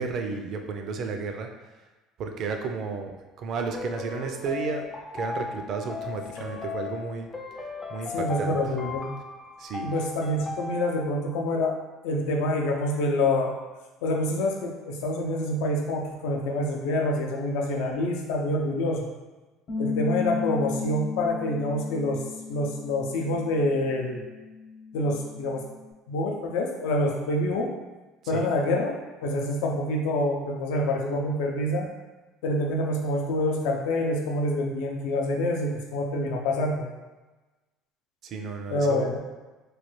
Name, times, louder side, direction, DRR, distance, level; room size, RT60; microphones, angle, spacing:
voice 1, 0.0-1.5 2.2-4.9 5.1-7.3 7.9-8.6 9.6-9.9 28.3-28.5 38.2-39.1, right 4 dB, 50° right, 4 dB, 0.4 m, -32 dB
sound 1, 3.6-11.1, left 3 dB, 20° left, 0.4 m, -36 dB
voice 2, 8.1-9.1 9.8-11.8 12.0-13.5 14.0-19.1 19.8-22.2 22.5-24.2 24.9-25.6 26.1-27.7 28.3-28.9 29.2-31.9 32.4-36.9 38.7-39.2, left 1 dB, 85° left, 1 dB, 0.5 m, -26 dB
Bass guitar, 19.7-25.9, left 5 dB, 55° left, 0.8 m, -35 dB
3.1 x 2.3 x 3.0 m, 1.2 s
cardioid pair, 120°, 0 cm